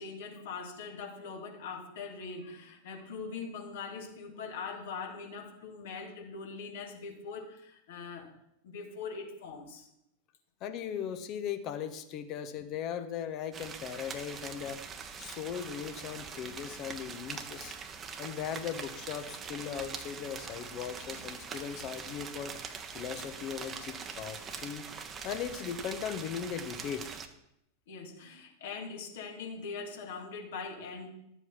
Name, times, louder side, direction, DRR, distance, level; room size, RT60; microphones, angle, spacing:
voice 1, 0.0-8.3 8.6-9.9 27.9-31.1, left 5 dB, 55° left, 2 dB, 2.6 m, -42 dB
voice 2, 10.6-14.8 15.2-17.7 18.2-22.6 22.9-24.9 25.2-27.0, left 8 dB, 40° left, 9 dB, 1.3 m, -38 dB
sound 1, 13.5-27.3, right 6 dB, 25° right, 1.2 m, -43 dB
12.5 x 7.9 x 5.9 m, 0.78 s
figure-of-eight pair, 90°, 0 cm